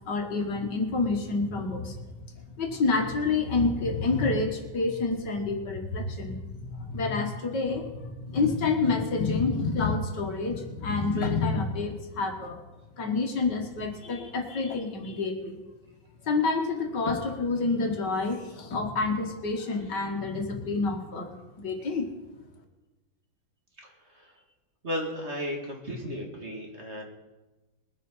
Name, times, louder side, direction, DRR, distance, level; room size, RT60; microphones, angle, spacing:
voice 1, 0.1-2.1 2.6-6.4 6.7-12.6 13.0-15.6 16.2-22.1, left 3 dB, 60° left, 4 dB, 2.0 m, -28 dB
voice 2, 23.8-24.3 24.8-27.0, equal, 35° right, 0 dB, 2.1 m, -35 dB
21.5 x 7.4 x 5.5 m, 1.1 s
omnidirectional pair, 2.1 m